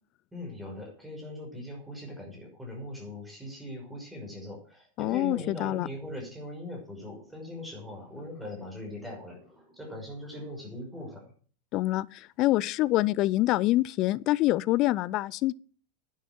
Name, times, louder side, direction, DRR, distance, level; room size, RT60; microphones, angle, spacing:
voice 1, 0.3-11.3, left 1 dB, 5° right, 5.8 m, -40 dB
voice 2, 5.0-5.9 11.7-15.5, left 17 dB, 40° left, 0.5 m, -26 dB
10.5 x 9.2 x 7.6 m
figure-of-eight pair, 90°, 0 cm